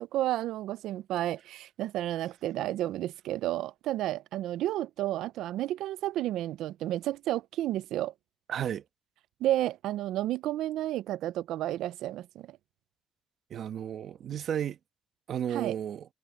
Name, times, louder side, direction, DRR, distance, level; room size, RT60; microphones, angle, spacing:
voice 1, 0.0-8.1 9.4-12.6 15.5-15.8, right 14 dB, 85° right, 0.4 m, -31 dB
voice 2, 8.5-8.8 13.5-14.8 15.3-16.1, right 9 dB, 65° right, 1.2 m, -33 dB
cardioid pair, 90°, 0 cm